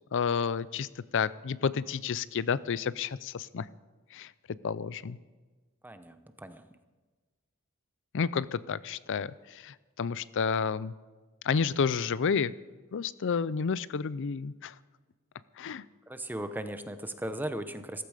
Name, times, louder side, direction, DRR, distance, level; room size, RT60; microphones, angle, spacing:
voice 1, 0.1-3.7 4.1-4.3 4.6-5.2 8.1-10.9 11.4-12.5 12.9-14.7 15.6-15.8, left 6 dB, 60° left, 18 dB, 0.5 m, -30 dB
voice 2, 5.8-6.6 16.1-18.0, right 1 dB, 10° right, 10 dB, 0.8 m, -37 dB
15.5 x 15.0 x 5.0 m, 1.3 s
head